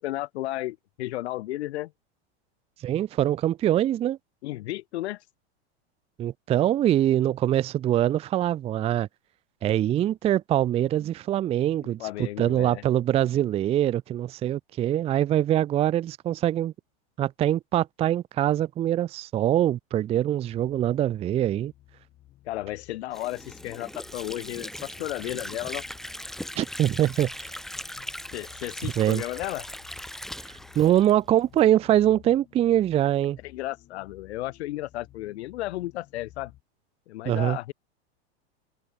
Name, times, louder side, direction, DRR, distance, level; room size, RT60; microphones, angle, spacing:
voice 1, 0.0-1.9 4.4-5.2 12.0-12.8 22.4-25.8 28.3-29.7 33.4-36.5 37.1-37.7, left 16 dB, 70° left, 1.1 m, -33 dB
voice 2, 2.8-4.2 6.2-9.1 9.6-12.0 12.4-16.7 17.2-21.7 26.6-27.3 29.0-29.2 30.8-33.4 37.3-37.6, right 12 dB, 20° right, 0.5 m, -23 dB
sound 1, 20.5-36.6, left 14 dB, 30° left, 6.5 m, -55 dB
Water / Sink (filling or washing), 23.1-31.7, equal, ahead, 1.5 m, -39 dB
open air
supercardioid pair, 140°, 34 cm